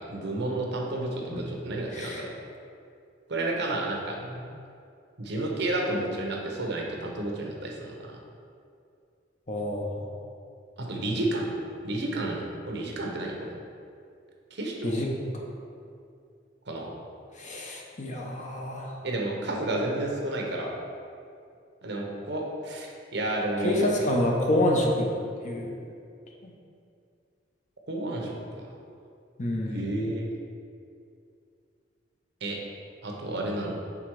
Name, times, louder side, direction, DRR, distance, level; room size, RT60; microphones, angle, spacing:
voice 1, 0.0-2.3 3.3-4.2 5.2-7.9 10.8-11.5 11.8-13.5 14.5-15.0 16.7-16.9 19.0-20.7 21.8-24.1 27.9-28.6 29.7-30.2 32.4-32.6 33.0-33.8, right 2 dB, 65° right, -1 dB, 0.9 m, -31 dB
voice 2, 1.9-2.2 4.3-4.4 9.5-10.1 14.8-15.1 17.4-18.9 23.6-25.1 25.4-25.7 26.4-26.5 29.4-29.8, left 1 dB, 40° left, -1 dB, 0.8 m, -27 dB
6.0 x 3.8 x 4.7 m, 2.4 s
head